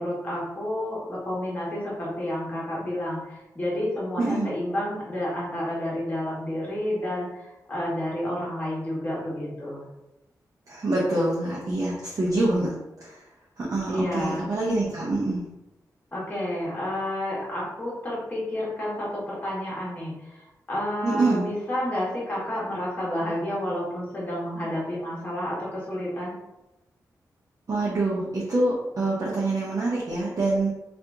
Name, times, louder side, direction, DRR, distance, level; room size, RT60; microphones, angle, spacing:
voice 1, 0.0-9.9 13.9-14.4 16.1-26.3, left 1 dB, 25° left, -6 dB, 1.3 m, -30 dB
voice 2, 4.2-4.5 10.7-12.7 13.0-13.2 13.6-15.5 21.0-21.5 27.7-30.7, right 2 dB, 50° right, -6 dB, 0.7 m, -25 dB
2.8 x 2.5 x 3.5 m, 0.98 s
wide cardioid pair, 115°, 7 cm